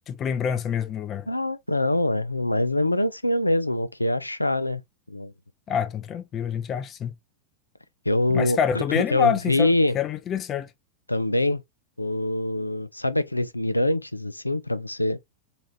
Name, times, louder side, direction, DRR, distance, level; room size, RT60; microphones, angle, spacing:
voice 1, 0.1-1.3 5.7-7.1 8.3-10.7, left 8 dB, 30° left, 0.5 m, -27 dB
voice 2, 1.3-4.8 5.1-5.3 8.1-10.0 11.1-11.6 12.0-15.2, left 1 dB, 85° left, 0.4 m, -24 dB
4.0 x 2.4 x 3.1 m
figure-of-eight pair, 90°, 0 cm